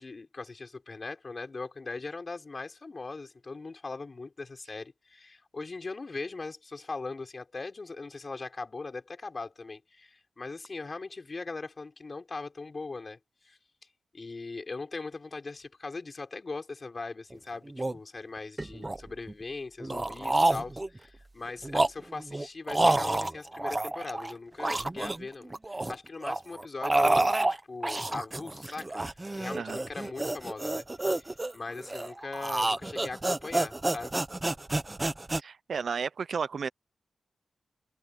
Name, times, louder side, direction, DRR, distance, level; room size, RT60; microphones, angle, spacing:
voice 1, 0.0-13.2 13.4-13.6 14.1-29.0 29.3-30.9 31.1-34.2, left 3 dB, 35° left, 4.7 m, -40 dB
sound 1, 17.3-17.4 17.7-18.0 18.6-19.3 19.8-21.0 21.5-24.3 24.6-25.9 26.2-35.4, right 2 dB, 20° right, 1.1 m, -29 dB
voice 2, 35.4-36.7, right 6 dB, 60° right, 0.7 m, -33 dB
wide cardioid pair, 105°, 0 cm